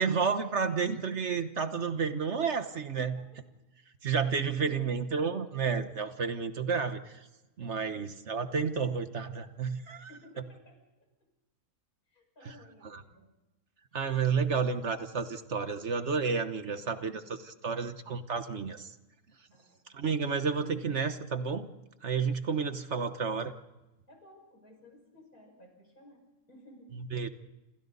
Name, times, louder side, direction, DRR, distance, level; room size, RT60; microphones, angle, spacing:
voice 1, 0.0-3.2 4.0-7.1 7.6-10.1 12.8-13.0 13.9-18.9 19.9-21.7 22.0-23.5 27.1-27.3, right 5 dB, 55° right, 10 dB, 1.4 m, -31 dB
voice 2, 4.6-5.2 9.9-11.1 12.1-13.3 14.4-14.6 16.7-18.0 19.5-20.1 24.1-26.2 26.5-26.9, left 1 dB, 75° left, 2 dB, 6.3 m, -57 dB
29.0 x 27.0 x 4.1 m, 1.0 s
omnidirectional pair, 1.5 m